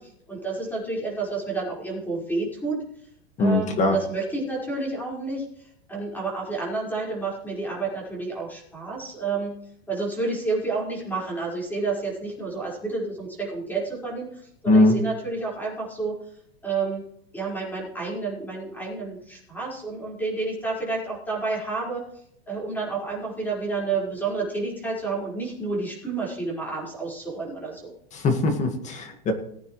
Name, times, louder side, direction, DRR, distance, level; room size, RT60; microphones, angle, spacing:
voice 1, 0.0-2.8 3.4-9.6 9.9-16.2 16.6-17.0 17.3-22.0 22.5-27.9, right 3 dB, 5° left, -4 dB, 5.0 m, -30 dB
voice 2, 3.4-4.0 14.7-15.0 28.1-29.3, left 2 dB, 20° left, 6 dB, 1.8 m, -20 dB
19.5 x 9.1 x 3.2 m, 0.72 s
supercardioid pair, 155°, 32 cm